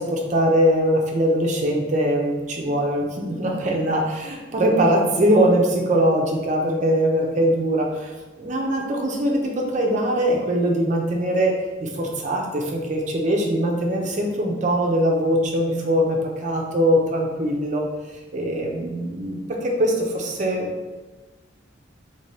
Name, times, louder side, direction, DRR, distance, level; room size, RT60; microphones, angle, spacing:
voice 1, 0.0-8.1 8.4-11.5 11.8-17.8 18.3-20.7, equal, 40° right, 0 dB, 0.6 m, -22 dB
3.3 x 3.2 x 2.7 m, 1.2 s
head